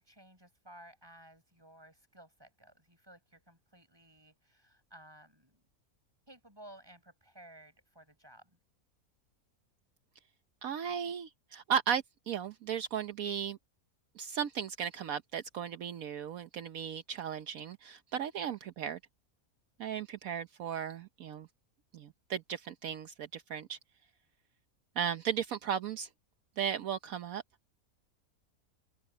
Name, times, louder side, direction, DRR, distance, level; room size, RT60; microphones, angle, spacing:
voice 1, 0.0-5.6 6.3-8.6 18.4-18.6, right 1 dB, 15° right, 7.0 m, -56 dB
voice 2, 10.6-13.6 14.2-19.0 19.8-21.5 21.9-23.8 25.0-26.1 26.6-27.4, right 8 dB, 70° right, 1.3 m, -36 dB
open air
omnidirectional pair, 1.5 m